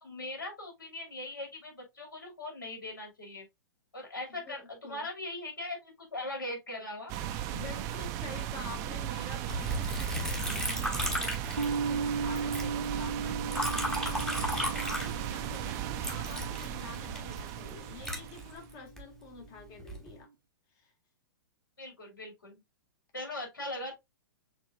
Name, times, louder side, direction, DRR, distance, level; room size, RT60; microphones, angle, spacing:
voice 1, 0.0-3.5 3.9-7.1 21.8-22.6 23.1-23.9, left 1 dB, 70° left, 2.7 m, -40 dB
sound 1, 7.1-18.7, right 10 dB, 30° right, 0.5 m, -37 dB
voice 2, 7.5-20.3 20.7-20.9, left 4 dB, 30° left, 1.5 m, -48 dB
Liquid, 9.5-12.1 12.4-15.6 16.0-19.0 19.6-20.1, equal, 5° left, 1.0 m, -35 dB
sound 2, 11.6-18.3, right 5 dB, 85° right, 0.7 m, -37 dB
6.7 x 3.0 x 2.3 m
figure-of-eight pair, 110°, 11 cm